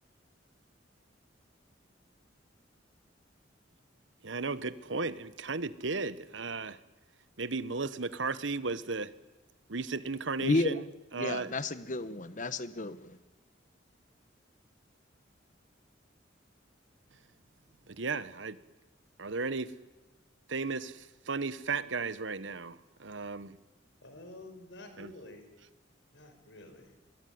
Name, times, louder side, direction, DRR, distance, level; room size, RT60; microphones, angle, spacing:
voice 1, 4.2-6.8 7.4-9.1 9.7-10.8 11.1-11.5 17.9-18.6 19.2-19.7 20.5-23.6 25.0-25.1, right 4 dB, 80° right, 15 dB, 1.2 m, -35 dB
voice 2, 10.4-10.8 11.1-13.2, left 2 dB, 40° left, 13 dB, 1.2 m, -32 dB
voice 3, 24.0-25.5 26.1-26.9, left 2 dB, 70° left, 7 dB, 5.0 m, -49 dB
23.5 x 22.0 x 9.5 m, 1.1 s
head